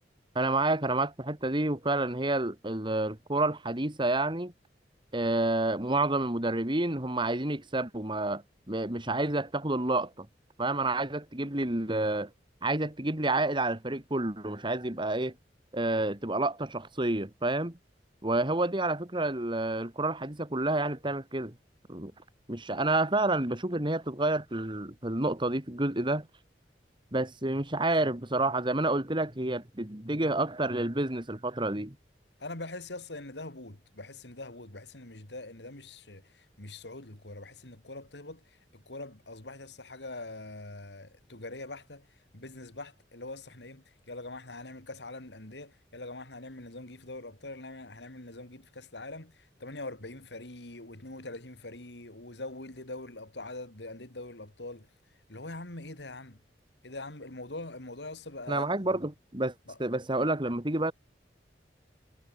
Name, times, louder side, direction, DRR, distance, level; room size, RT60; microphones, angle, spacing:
voice 1, 0.3-4.5 5.1-10.3 10.6-12.3 12.6-15.3 15.7-17.8 18.2-21.5 21.9-22.1 22.5-26.3 27.1-32.0 58.5-59.5 59.8-60.9, right 2 dB, 30° right, 2.4 m, -29 dB
voice 2, 32.4-38.4 38.7-42.0 42.3-54.9 55.3-56.4 56.8-58.7 59.7-59.8, left 2 dB, 75° left, 3.4 m, -43 dB
head